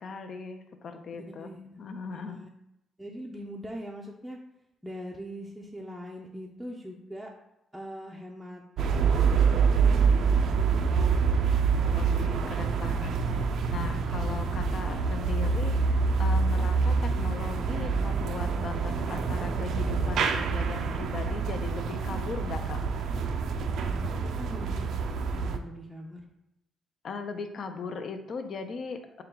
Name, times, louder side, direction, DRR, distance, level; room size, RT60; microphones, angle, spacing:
voice 1, 0.0-1.5 1.8-2.4 11.9-22.8 27.0-29.2, left 4 dB, 55° left, 7 dB, 0.5 m, -38 dB
voice 2, 1.4-1.8 2.1-2.5 3.0-4.4 4.8-7.3 7.7-8.6 8.9-11.0 23.7-26.2, equal, 5° right, -2 dB, 0.5 m, -42 dB
sound 1, 8.8-25.6, right 5 dB, 70° right, 0.4 m, -26 dB
4.3 x 2.3 x 3.7 m, 0.85 s
cardioid pair, 90°, 0 cm